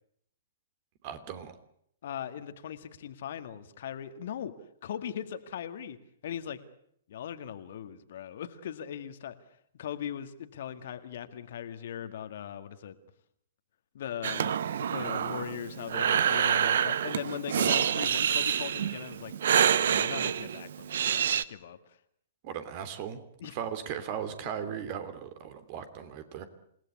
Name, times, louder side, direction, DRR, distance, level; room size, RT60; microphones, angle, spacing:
voice 1, 1.0-1.5 22.4-26.4, right 8 dB, 40° right, 11 dB, 3.0 m, -37 dB
voice 2, 2.0-4.5 4.8-6.0 6.2-6.6 7.1-9.4 9.8-13.0 13.9-19.3 19.8-21.8 23.4-23.5 24.6-24.7, left 9 dB, 55° left, 10 dB, 1.9 m, -39 dB
Breathing, 14.2-21.4, right 8 dB, 60° right, 0.9 m, -27 dB
28.0 x 18.0 x 8.5 m, 0.70 s
figure-of-eight pair, 115°, 0 cm